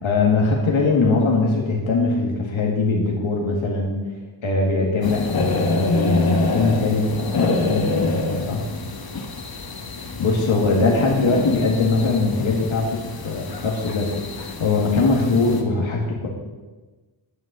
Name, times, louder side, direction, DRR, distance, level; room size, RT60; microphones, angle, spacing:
voice 1, 0.0-4.0 4.4-8.7 10.0-14.1 14.4-16.3, left 3 dB, 80° left, -1 dB, 2.0 m, -21 dB
sound 1, 5.0-15.6, left 3 dB, 50° left, 1.5 m, -26 dB
11.0 x 6.4 x 7.9 m, 1.3 s
wide cardioid pair, 120°, 47 cm